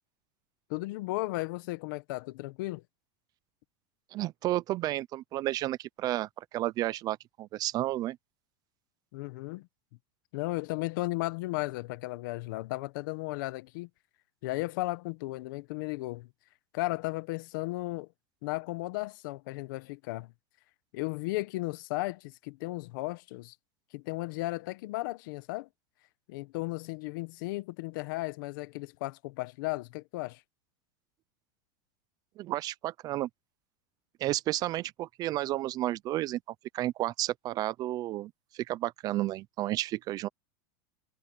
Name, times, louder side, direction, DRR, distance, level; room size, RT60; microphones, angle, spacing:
voice 1, 0.7-2.8 9.1-9.7 10.3-13.9 14.4-16.3 16.7-18.1 18.4-20.3 20.9-23.5 23.9-25.7 26.3-30.4, left 21 dB, 65° left, 1.4 m, -35 dB
voice 2, 4.1-8.2 32.4-33.3 34.2-36.4 36.7-40.3, right 15 dB, 35° right, 0.5 m, -32 dB
supercardioid pair, 150°, 12 cm